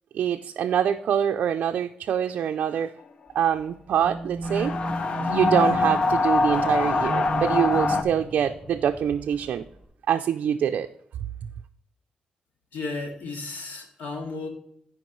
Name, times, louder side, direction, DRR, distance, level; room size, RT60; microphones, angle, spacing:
voice 1, 0.1-2.9 3.3-4.7 5.3-9.6 10.1-10.9, right 9 dB, 70° right, 6 dB, 0.4 m, -25 dB
sound 1, 3.9-9.9, right 2 dB, 20° right, 1.7 m, -35 dB
sound 2, 4.4-8.0, left 3 dB, 40° left, 0.6 m, -24 dB
voice 2, 12.7-14.5, left 3 dB, 85° left, 2 dB, 2.1 m, -34 dB
15.0 x 5.0 x 3.0 m, 0.72 s
wide cardioid pair, 150°, 3 cm